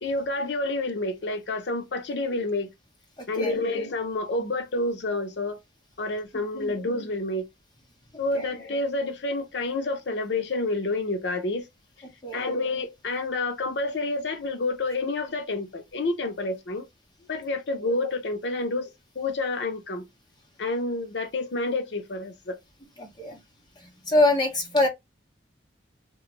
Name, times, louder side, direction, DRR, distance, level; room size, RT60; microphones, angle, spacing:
voice 1, 0.0-2.7 3.3-5.6 6.0-7.5 8.2-11.7 12.3-16.9 17.3-18.9 19.2-20.1 20.6-22.6, left 2 dB, 65° left, 0.6 m, -29 dB
voice 2, 3.2-3.5 6.5-6.7 8.3-8.5 12.2-12.5 23.0-23.4 23.8-24.9, left 2 dB, 25° left, 0.7 m, -25 dB
2.5 x 2.3 x 3.0 m
head